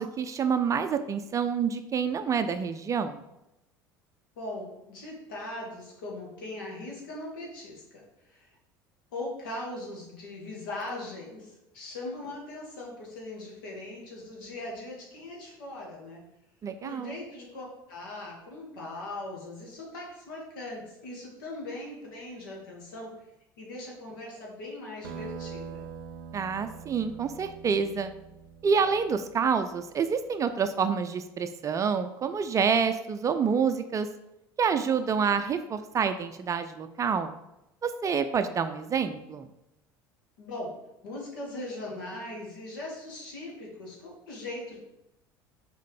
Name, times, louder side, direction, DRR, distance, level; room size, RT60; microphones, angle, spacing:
voice 1, 0.0-3.2 16.6-17.2 26.3-28.1 28.6-34.1 34.6-37.3 37.8-39.5, right 6 dB, 25° right, 9 dB, 0.5 m, -27 dB
voice 2, 4.4-8.6 9.1-16.2 16.8-23.1 23.6-25.9 40.4-40.7 41.0-44.8, left 2 dB, 65° left, -2 dB, 2.3 m, -40 dB
sound 1, 25.0-30.2, right 6 dB, 65° right, 0.6 m, -44 dB
6.5 x 4.5 x 5.1 m, 0.89 s
figure-of-eight pair, 65°, 12 cm